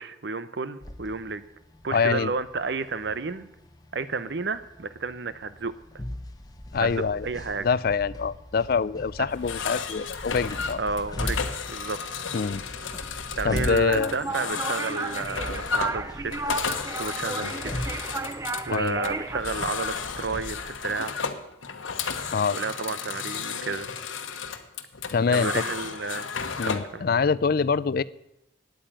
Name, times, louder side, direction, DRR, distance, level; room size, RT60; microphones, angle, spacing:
voice 1, 0.0-1.4 1.8-3.5 3.9-5.7 6.8-7.7 10.8-12.3 13.4-16.3 17.0-18.0 18.7-21.2 22.5-23.9 25.3-26.3 26.7-27.2, right 4 dB, 60° right, 14 dB, 0.7 m, -31 dB
sound 1, 0.8-20.8, left 1 dB, 20° left, 1.0 m, -39 dB
voice 2, 1.9-2.3 6.7-7.3 7.6-10.8 12.3-12.6 13.4-14.1 17.4-17.5 18.7-19.1 22.3-22.6 25.1-25.6 26.6-28.0, left 5 dB, 50° left, 18 dB, 0.4 m, -25 dB
sound 2, 9.3-27.0, left 6 dB, 85° left, 1.1 m, -33 dB
sound 3, 13.9-19.4, right 3 dB, 15° right, 0.4 m, -33 dB
9.3 x 8.9 x 8.9 m, 0.87 s
head